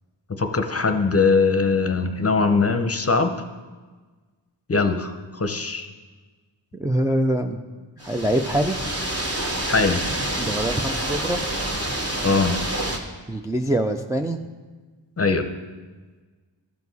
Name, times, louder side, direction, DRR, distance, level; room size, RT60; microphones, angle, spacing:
voice 1, 0.3-3.3 4.7-5.9 9.7-10.0 12.2-12.5 15.2-15.5, left 4 dB, 35° left, 7 dB, 0.7 m, -21 dB
voice 2, 6.8-7.6 8.0-8.8 10.4-11.4 13.3-14.4, right 1 dB, 10° right, 3 dB, 0.3 m, -24 dB
sound 1, 8.0-13.0, right 1 dB, 30° right, 1.1 m, -27 dB
13.5 x 4.7 x 4.1 m, 1.3 s
wide cardioid pair, 70°, 45 cm